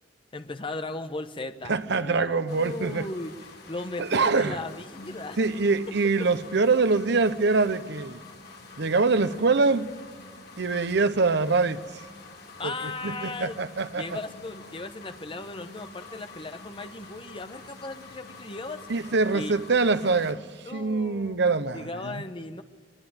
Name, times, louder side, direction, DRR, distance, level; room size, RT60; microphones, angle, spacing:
voice 1, 0.3-3.3 3.7-5.4 12.6-13.6 14.0-18.9 19.3-19.5 20.6-21.3 21.7-22.6, left 2 dB, 30° left, 1.0 m, -37 dB
voice 2, 1.7-3.1 4.0-4.6 5.4-8.2 8.8-9.9 10.6-11.8 12.6-12.7 13.0-14.2 18.9-20.4 20.7-22.2, right 4 dB, 65° right, 0.8 m, -24 dB
sound 1, 2.5-20.3, left 3 dB, 60° left, 4.1 m, -47 dB
22.5 x 21.5 x 8.9 m
head